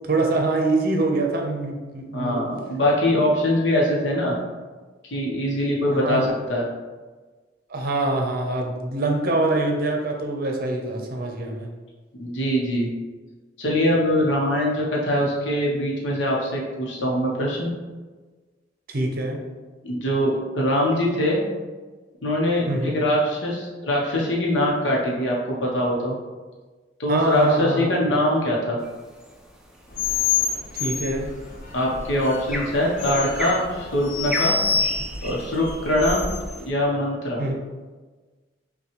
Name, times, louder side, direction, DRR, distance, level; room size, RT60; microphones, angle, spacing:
voice 1, 0.1-2.4 5.9-6.3 7.7-11.7 18.9-19.4 22.7-23.0 27.1-27.9 30.8-31.3 37.4-37.5, right 2 dB, 55° right, 1 dB, 0.6 m, -24 dB
voice 2, 2.1-4.4 5.0-6.7 12.2-12.9 13.6-17.7 19.8-21.4 22.2-26.1 27.0-28.8 31.7-34.6 35.2-36.2 36.7-37.4, left 1 dB, 80° left, -3 dB, 0.8 m, -23 dB
sound 1, 28.8-36.7, left 1 dB, 5° right, 0.4 m, -38 dB
sound 2, 29.9-36.6, left 5 dB, 50° left, 0.5 m, -27 dB
5.6 x 2.3 x 3.0 m, 1.3 s
head